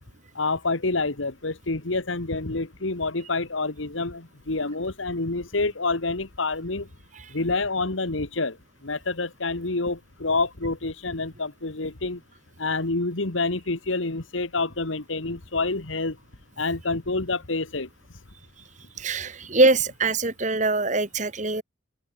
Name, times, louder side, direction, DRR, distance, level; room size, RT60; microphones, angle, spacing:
voice 1, 0.4-6.9 7.3-8.6 8.8-12.2 12.6-16.2 16.6-17.9, left 3 dB, 85° left, 1.8 m, -27 dB
voice 2, 19.0-21.6, right 2 dB, 40° right, 2.1 m, -23 dB
open air
head